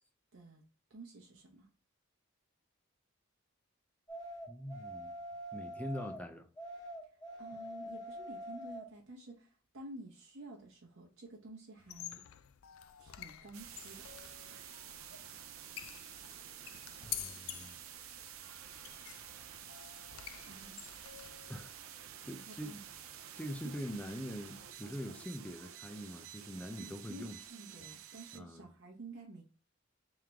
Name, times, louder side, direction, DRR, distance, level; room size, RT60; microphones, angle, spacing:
voice 1, 0.3-0.6 0.9-1.7 7.0-7.1 7.4-12.2 13.0-14.1 14.4-14.7 20.5-20.8 22.5-22.8 23.6-23.7 26.7-29.4, right 2 dB, 65° right, 0.9 m, -51 dB
sound 1, 4.1-6.2 6.6-8.9, equal, 25° left, 1.4 m, -45 dB
voice 2, 4.5-5.1 5.5-6.5 17.0-17.8 21.5-22.8 23.4-27.4 28.3-28.7, equal, 5° left, 0.4 m, -43 dB
sound 2, 11.8-21.6, left 12 dB, 80° left, 0.4 m, -49 dB
sound 3, 13.5-28.4, right 9 dB, 80° right, 0.5 m, -50 dB
3.7 x 3.1 x 3.4 m
head